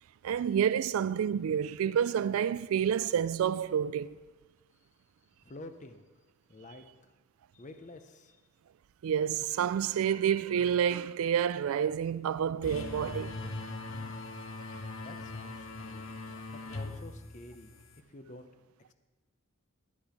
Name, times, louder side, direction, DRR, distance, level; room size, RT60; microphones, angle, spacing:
voice 1, 0.2-4.2 9.0-13.4, right 8 dB, 70° right, 0.3 m, -29 dB
voice 2, 5.4-6.1 6.5-6.8 7.5-8.4 15.0-16.1 16.5-17.7 18.1-18.5, left 2 dB, 35° left, 0.7 m, -49 dB
sound 1, 12.6-18.0, left 2 dB, 60° left, 1.0 m, -41 dB
12.0 x 8.5 x 5.1 m
head